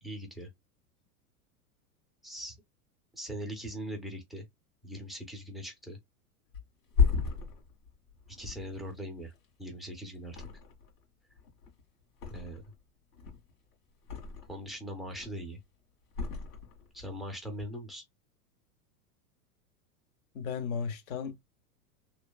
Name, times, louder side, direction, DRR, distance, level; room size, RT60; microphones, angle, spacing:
voice 1, 0.0-0.5 2.2-2.6 3.1-4.5 4.8-6.0 8.4-9.3 9.6-10.4 12.3-12.6 14.5-15.6 16.9-18.0, equal, ahead, 0.3 m, -40 dB
Thump thud, 6.5-9.8 10.2-11.0 11.3-12.8 13.1-14.7 15.0-15.6 16.1-17.1 17.4-17.6, left 6 dB, 80° left, 1.7 m, -33 dB
voice 2, 20.3-21.4, left 6 dB, 65° left, 0.7 m, -35 dB
3.0 x 2.0 x 2.2 m
hypercardioid pair, 105°, 45 cm